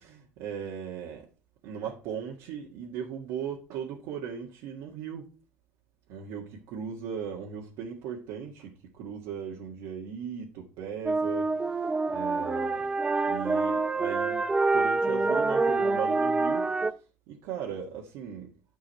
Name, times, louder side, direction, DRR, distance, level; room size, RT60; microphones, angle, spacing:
voice 1, 0.4-1.3 1.6-5.2 6.1-12.9 13.3-14.4 14.7-17.0 17.3-18.5, right 7 dB, 75° right, 1.7 m, -38 dB
sound 1, 11.1-16.9, right 3 dB, 15° right, 0.5 m, -26 dB
9.8 x 5.6 x 4.3 m
cardioid pair, 115°, 5 cm